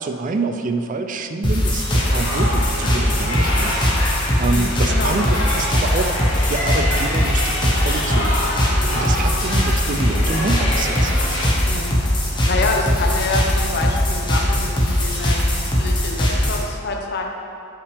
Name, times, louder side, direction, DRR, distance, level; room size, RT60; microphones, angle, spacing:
voice 1, 0.0-6.1 6.5-8.6 8.9-11.2, right 3 dB, 40° right, 6 dB, 0.4 m, -27 dB
sound 1, 1.4-16.7, equal, 25° left, 1.2 m, -20 dB
sound 2, 2.0-11.4, left 1 dB, 70° left, 1.9 m, -26 dB
voice 2, 4.5-5.2 11.7-11.9 12.4-17.2, left 3 dB, 55° left, 1 dB, 0.9 m, -26 dB
11.0 x 5.7 x 3.5 m, 2.8 s
head